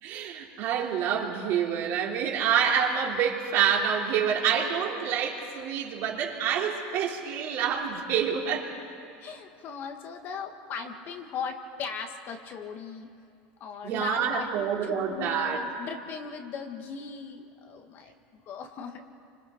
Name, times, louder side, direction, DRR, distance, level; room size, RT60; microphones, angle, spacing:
voice 1, 0.0-8.7 13.8-15.6, right 8 dB, 50° right, -1 dB, 3.2 m, -27 dB
voice 2, 9.2-13.1 13.6-19.0, left 6 dB, 40° left, 5 dB, 1.7 m, -38 dB
29.0 x 25.5 x 4.5 m, 2.5 s
supercardioid pair, 145°, 5 cm